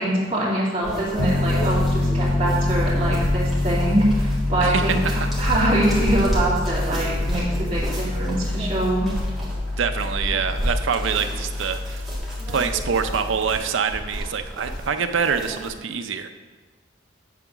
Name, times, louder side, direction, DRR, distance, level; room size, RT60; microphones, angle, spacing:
voice 1, 0.0-9.1, right 1 dB, 30° right, -8 dB, 2.4 m, -24 dB
sound 1, 0.8-15.7, equal, ahead, 1.7 m, -32 dB
Piano, 1.2-13.4, left 2 dB, 25° left, 0.4 m, -26 dB
voice 2, 4.6-5.3 9.8-12.1 12.5-16.3, right 6 dB, 85° right, 8 dB, 0.5 m, -25 dB
8.2 x 3.9 x 5.9 m, 1.3 s
head